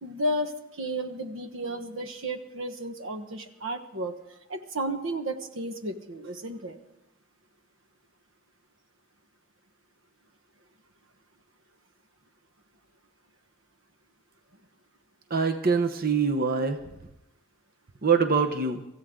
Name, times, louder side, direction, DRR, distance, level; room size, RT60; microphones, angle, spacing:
voice 1, 0.0-4.2 4.5-6.8, right 1 dB, 70° right, 7 dB, 1.3 m, -33 dB
voice 2, 15.3-16.8 18.0-18.9, right 5 dB, 45° right, 6 dB, 1.0 m, -24 dB
25.0 x 15.0 x 3.8 m, 0.87 s
head